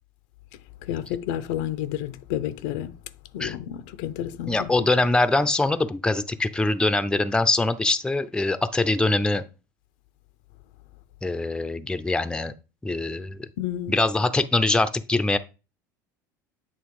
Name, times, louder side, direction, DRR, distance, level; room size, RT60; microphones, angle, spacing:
voice 1, 0.9-2.9 3.3-4.7 13.6-14.0, left 11 dB, 75° left, 0.6 m, -30 dB
voice 2, 4.5-9.4 11.2-12.5 12.8-13.5 13.9-15.4, left 2 dB, 10° left, 0.6 m, -23 dB
8.3 x 3.0 x 4.8 m
hypercardioid pair, 80°, 10 cm